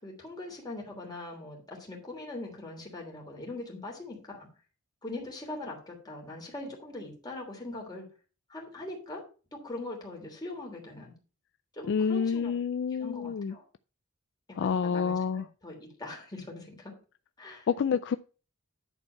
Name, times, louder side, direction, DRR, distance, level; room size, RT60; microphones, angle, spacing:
voice 1, 0.0-4.5 5.0-8.0 8.5-9.2 9.5-11.1 11.7-12.5 12.9-13.6 14.5-16.9 17.4-17.7, left 2 dB, 20° left, 3.0 m, -41 dB
voice 2, 11.9-13.5 14.6-15.4 17.7-18.2, left 6 dB, 55° left, 0.3 m, -28 dB
10.5 x 4.5 x 5.6 m
head